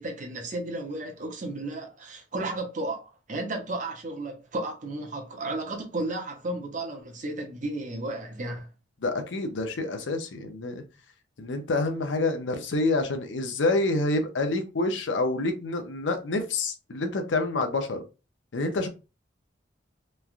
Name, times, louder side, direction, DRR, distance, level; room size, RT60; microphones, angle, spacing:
voice 1, 0.0-8.7, right 2 dB, 40° right, 0.7 m, -33 dB
voice 2, 9.0-10.8 11.4-18.0 18.5-18.9, left 2 dB, 75° left, 0.6 m, -27 dB
3.1 x 2.3 x 2.4 m
head